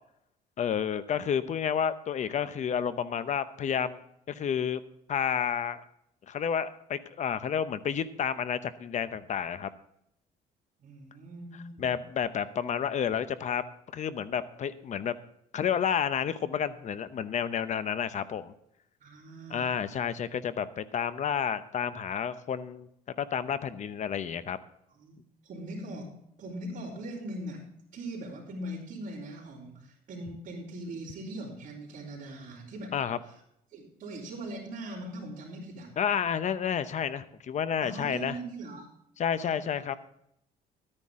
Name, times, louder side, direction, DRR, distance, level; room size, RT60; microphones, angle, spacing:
voice 1, 0.6-4.0 4.3-4.8 5.1-5.8 6.3-9.7 11.8-13.6 13.9-15.1 15.5-18.5 19.5-22.9 23.2-24.6 32.9-33.2 36.0-38.4 39.2-39.9, left 8 dB, 45° left, 14 dB, 0.8 m, -30 dB
voice 2, 10.8-12.0 19.0-19.7 24.9-25.2 25.4-26.1 26.4-27.6 27.9-32.9 33.3-33.4 33.7-35.9 37.8-38.9 39.3-39.6, right 1 dB, 50° right, -8 dB, 3.7 m, -40 dB
13.0 x 9.8 x 3.7 m, 0.76 s
cardioid pair, 110°, 17 cm